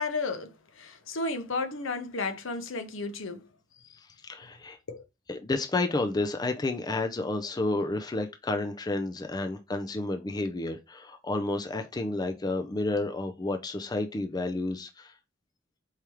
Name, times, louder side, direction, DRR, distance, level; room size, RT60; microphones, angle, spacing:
voice 1, 0.0-3.5 3.9-4.0 4.9-5.0, left 3 dB, 75° left, 0.8 m, -33 dB
voice 2, 4.2-4.8 5.3-15.1, left 2 dB, 20° left, 0.4 m, -31 dB
4.7 x 3.4 x 2.9 m
head